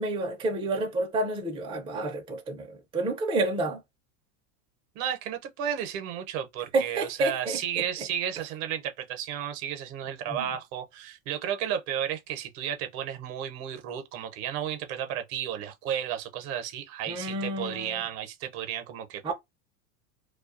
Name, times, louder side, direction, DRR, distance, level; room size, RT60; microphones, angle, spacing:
voice 1, 0.0-3.8 6.7-7.6 17.1-18.0 19.2-19.3, right 2 dB, 10° right, 0.4 m, -29 dB
voice 2, 4.9-19.3, right 9 dB, 60° right, 0.7 m, -33 dB
2.3 x 2.3 x 2.4 m
hypercardioid pair, 100°, 44 cm